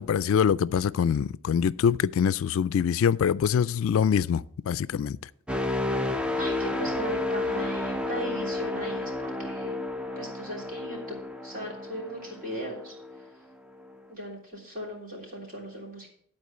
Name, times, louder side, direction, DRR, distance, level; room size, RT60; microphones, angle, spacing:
voice 1, 0.0-5.2, left 7 dB, 70° left, 0.3 m, -24 dB
sound 1, 5.5-13.3 13.7-14.0, left 2 dB, 5° right, 0.5 m, -31 dB
voice 2, 6.3-9.8 10.1-11.2 11.4-12.9 14.1-16.1, equal, 40° right, 3.2 m, -38 dB
11.5 x 4.4 x 7.7 m
head